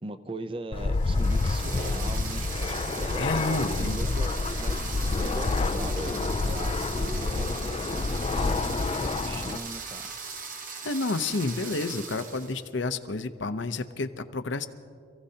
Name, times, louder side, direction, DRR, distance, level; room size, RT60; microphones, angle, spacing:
voice 1, 0.0-10.0, right 2 dB, 25° right, 11 dB, 0.5 m, -39 dB
Fixed-wing aircraft airplane, 0.7-9.6, left 3 dB, 30° left, 0.3 m, -28 dB
sound 1, 0.9-12.7, right 5 dB, 45° right, 0.9 m, -39 dB
voice 2, 3.2-4.0 10.8-14.7, left 3 dB, 65° left, 10 dB, 0.7 m, -30 dB
26.5 x 15.5 x 2.8 m, 2.3 s
head